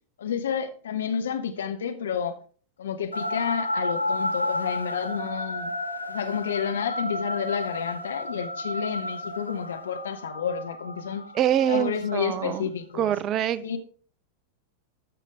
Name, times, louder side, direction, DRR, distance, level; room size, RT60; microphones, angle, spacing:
voice 1, 0.2-2.4 2.8-5.7 6.1-11.2 11.7-13.1 13.6-13.8, left 7 dB, 65° left, 1.1 m, -30 dB
sound 1, 3.1-12.6, left 1 dB, 90° right, 0.9 m, -32 dB
voice 2, 11.3-12.6 13.0-13.8, right 10 dB, 35° right, 0.4 m, -25 dB
12.5 x 6.0 x 3.6 m
figure-of-eight pair, 90°, 0 cm